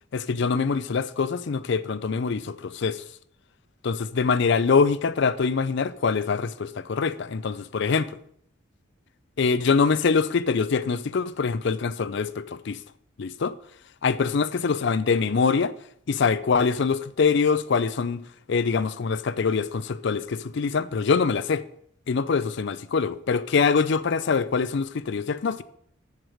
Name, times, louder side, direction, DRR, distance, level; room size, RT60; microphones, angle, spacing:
voice 1, 0.1-3.0 3.8-8.2 9.4-12.8 13.2-13.6 14.0-15.7 16.1-21.7 22.1-25.6, left 5 dB, 60° left, 0.4 m, -24 dB
14.0 x 4.7 x 4.9 m
head